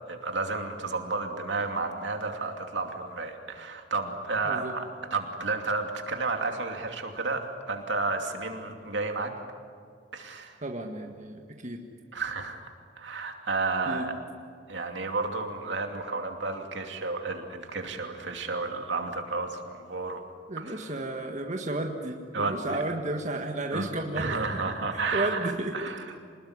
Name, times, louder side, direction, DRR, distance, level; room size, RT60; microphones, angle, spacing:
voice 1, 0.1-4.8 5.1-9.3 10.1-10.6 12.1-12.6 13.0-14.1 14.7-20.2 20.6-20.9 22.3-22.8 23.7-25.4 25.7-26.0, right 3 dB, 75° right, 4 dB, 2.8 m, -32 dB
voice 2, 10.6-11.8 13.9-14.1 20.5-24.4 24.9-25.9, right 2 dB, 40° right, 2 dB, 1.8 m, -33 dB
26.5 x 20.0 x 9.8 m, 2.2 s
head